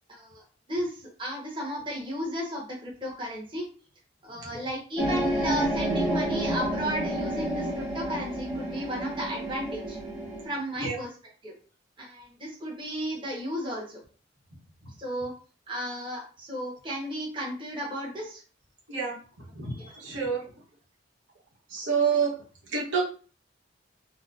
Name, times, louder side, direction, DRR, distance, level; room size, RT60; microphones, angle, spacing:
voice 1, 0.1-0.4 0.7-3.6 4.2-10.0 10.4-11.1 11.4-11.5 12.0-14.0 15.0-15.3 15.7-18.4 19.8-19.9, equal, 25° right, -5 dB, 1.2 m, -34 dB
sound 1, 5.0-10.5, right 1 dB, 5° right, 1.2 m, -30 dB
voice 2, 20.0-20.4 21.7-22.3 22.7-23.0, right 6 dB, 75° right, -4 dB, 1.1 m, -27 dB
4.2 x 2.1 x 2.5 m, 0.38 s
head